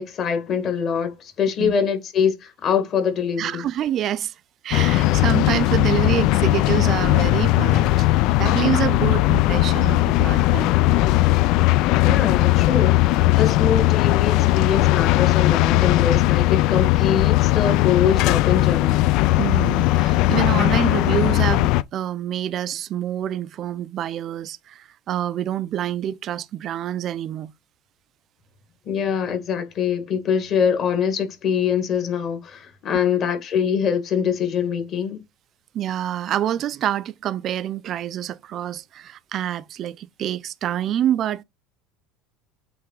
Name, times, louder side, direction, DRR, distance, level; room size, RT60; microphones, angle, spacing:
voice 1, 0.0-3.7 12.0-19.1 28.9-35.2, left 7 dB, 35° left, 1.6 m, -24 dB
voice 2, 3.4-4.3 4.6-8.1 8.4-10.7 19.4-27.5 35.7-41.4, right 11 dB, 35° right, 0.4 m, -27 dB
sound 1, 4.7-21.8, left 17 dB, 55° left, 0.3 m, -18 dB
7.8 x 3.3 x 3.7 m
cardioid pair, 155°, 0 cm